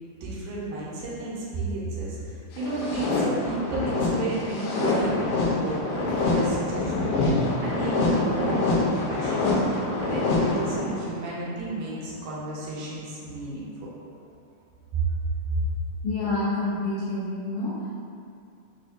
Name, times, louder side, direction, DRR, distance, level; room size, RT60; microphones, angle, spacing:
voice 1, 0.2-3.2 3.4-9.6 10.0-13.9 14.9-15.1 15.5-15.6, right 2 dB, 85° right, -6 dB, 2.4 m, -32 dB
sound 1, 2.5-11.2, left 2 dB, 90° left, 2.5 m, -25 dB
sound 2, 2.6-3.6 6.1-7.1, right 2 dB, 45° right, 1.0 m, -44 dB
voice 2, 16.0-17.9, left 2 dB, 70° left, -11 dB, 2.0 m, -28 dB
5.6 x 2.4 x 2.6 m, 2.4 s
omnidirectional pair, 4.0 m